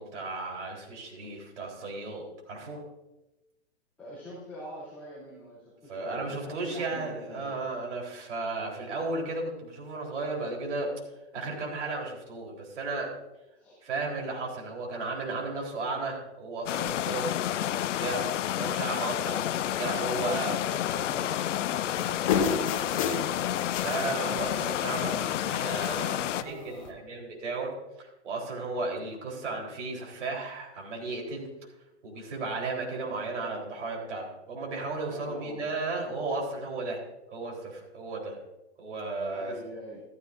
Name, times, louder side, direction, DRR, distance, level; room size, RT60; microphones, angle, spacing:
voice 1, 0.0-2.8 5.9-10.9 11.3-13.1 13.8-17.6 18.0-18.2 18.5-19.4 19.8-20.5 23.8-27.7 28.0-31.5 32.0-37.0 37.3-38.4 38.8-39.5, right 3 dB, 75° right, -1 dB, 4.1 m, -34 dB
voice 2, 4.0-7.5 13.5-13.8 17.4-17.7 20.1-23.8 26.1-27.0 35.1-35.9 39.3-40.0, equal, 5° left, -11 dB, 3.2 m, -45 dB
sound 1, 16.7-26.4, left 12 dB, 80° left, 0.6 m, -30 dB
sound 2, 22.0-24.1 24.4-24.6 24.9-25.3 25.5-26.1 26.8-26.9, left 6 dB, 30° left, 0.7 m, -30 dB
14.0 x 13.5 x 2.6 m, 0.98 s
hypercardioid pair, 170°, 36 cm